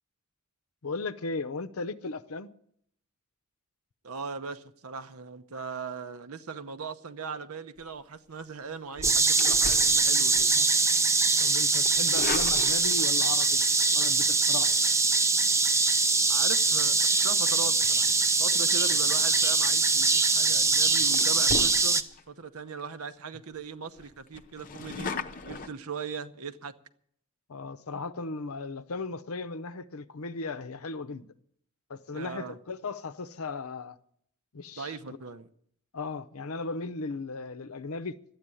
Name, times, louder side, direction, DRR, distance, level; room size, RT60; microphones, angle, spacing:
voice 1, 0.8-2.5 11.4-13.6 13.9-14.7 27.5-31.3 31.9-34.0 34.5-34.9 35.9-38.2, left 3 dB, 75° left, 0.7 m, -36 dB
voice 2, 4.0-10.5 16.3-16.9 17.2-18.1 18.4-25.1 25.5-26.7 32.1-32.6 34.8-35.5, right 5 dB, 80° right, 0.9 m, -39 dB
sound 1, 8.9-10.6 10.9-11.2 11.8-13.2 14.5-14.8 19.8-20.1 20.6-20.7 21.1-22.2 22.7-22.8 23.1-23.2 23.5-23.6 24.0-25.7, left 4 dB, 40° left, 0.7 m, -37 dB
sound 2, 9.0-22.0, right 3 dB, 15° right, 0.5 m, -23 dB
12.0 x 8.9 x 9.7 m
head